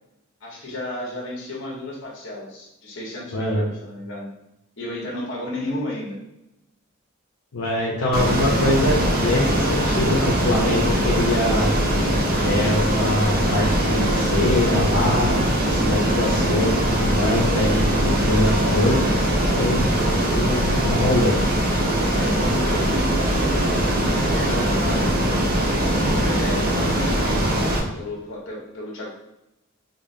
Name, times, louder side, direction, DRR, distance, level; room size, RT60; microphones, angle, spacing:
voice 1, 0.4-4.3 4.8-6.2 22.1-23.7 24.3-25.2 25.9-27.6 27.9-29.1, left 1 dB, 55° left, -3 dB, 1.2 m, -33 dB
voice 2, 3.3-3.6 7.5-11.7 12.4-19.1 19.4-19.9 20.3-21.4, left 1 dB, 80° left, -4 dB, 0.7 m, -23 dB
Ocean, 8.1-27.8, right 1 dB, 40° right, 0.7 m, -21 dB
5.1 x 2.0 x 2.6 m, 0.88 s
head